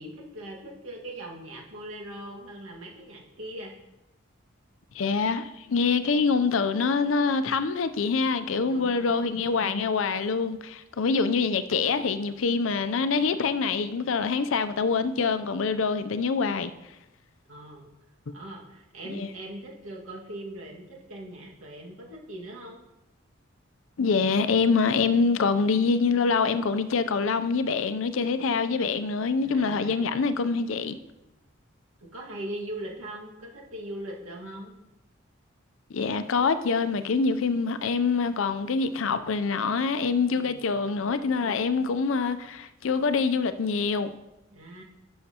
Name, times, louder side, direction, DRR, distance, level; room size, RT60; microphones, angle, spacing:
voice 1, 0.0-3.7 8.6-9.5 17.5-17.9 18.3-22.8 29.4-30.2 32.0-34.8 40.3-40.8 44.5-44.8, right 1 dB, 90° right, 1.8 m, -40 dB
voice 2, 4.9-16.7 19.1-19.3 24.0-31.0 35.9-44.1, left 4 dB, 70° left, 0.5 m, -25 dB
11.0 x 6.5 x 2.9 m
head